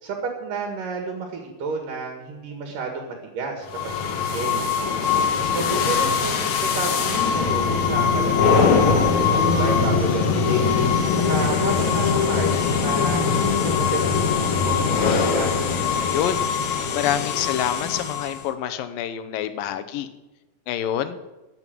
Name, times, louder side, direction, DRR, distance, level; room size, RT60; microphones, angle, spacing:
voice 1, 0.0-4.7 5.4-15.8, right 4 dB, 70° right, 3 dB, 3.5 m, -31 dB
sound 1, 3.7-18.5, left 5 dB, 65° left, 2.6 m, -21 dB
voice 2, 16.0-16.5 16.9-20.1 20.7-21.2, left 10 dB, 85° left, 10 dB, 2.7 m, -27 dB
14.0 x 7.7 x 9.3 m, 1.1 s
omnidirectional pair, 3.9 m